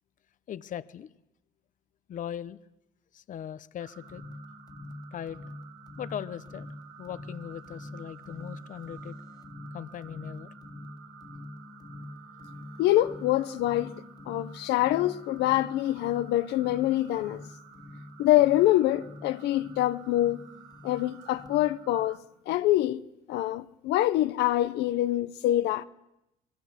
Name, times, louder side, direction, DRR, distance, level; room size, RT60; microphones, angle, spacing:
voice 1, 0.5-1.1 2.1-2.6 3.1-4.2 5.1-5.4 6.0-6.7 7.0-9.2 9.7-10.5, left 10 dB, 50° left, 0.9 m, -39 dB
sound 1, 3.8-22.2, right 7 dB, 80° right, 2.7 m, -53 dB
sound 2, 4.0-22.0, left 1 dB, 25° left, 1.9 m, -46 dB
voice 2, 12.8-17.5 18.2-20.5 20.8-23.0 23.3-25.8, left 14 dB, 85° left, 0.9 m, -25 dB
26.0 x 21.5 x 8.1 m
cardioid pair, 110°, 17 cm